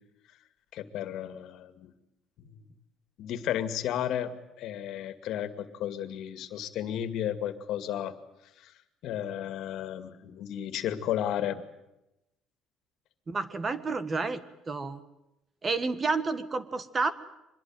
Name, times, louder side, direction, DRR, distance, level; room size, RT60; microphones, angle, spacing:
voice 1, 0.7-1.9 2.4-2.6 3.2-8.1 8.6-8.7 9.0-11.6, left 10 dB, 65° left, 10 dB, 2.3 m, -33 dB
voice 2, 13.3-15.0 15.6-17.1, right 4 dB, 25° right, 13 dB, 1.6 m, -30 dB
24.5 x 21.5 x 9.3 m, 0.89 s
cardioid pair, 140°, 0 cm